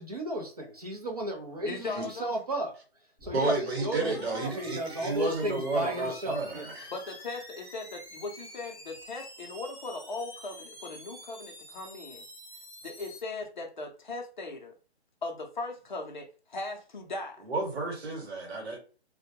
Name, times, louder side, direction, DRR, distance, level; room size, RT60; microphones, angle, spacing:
voice 1, 0.0-2.7 3.2-6.7, right 1 dB, 35° right, 0.6 m, -34 dB
voice 2, 1.6-2.4 6.9-12.2 12.8-14.8 15.2-17.5, left 3 dB, 45° left, 0.5 m, -38 dB
sound 1, 3.2-13.2, left 1 dB, ahead, 0.7 m, -47 dB
voice 3, 3.3-6.9 17.4-18.8, right 3 dB, 70° right, 1.2 m, -32 dB
2.2 x 2.1 x 2.7 m
hypercardioid pair, 175°, 33 cm